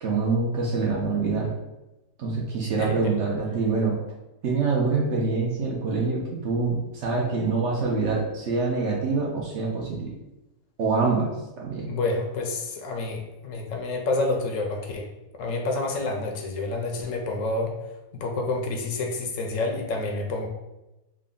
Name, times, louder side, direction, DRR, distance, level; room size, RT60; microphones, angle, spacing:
voice 1, 0.0-1.5 2.2-4.0 4.4-10.1 10.8-11.9, right 4 dB, 60° right, -1 dB, 0.8 m, -25 dB
voice 2, 11.9-15.1 15.4-17.7 18.1-20.5, left 2 dB, 70° left, 2 dB, 0.8 m, -28 dB
3.6 x 2.2 x 3.7 m, 1.0 s
omnidirectional pair, 1.6 m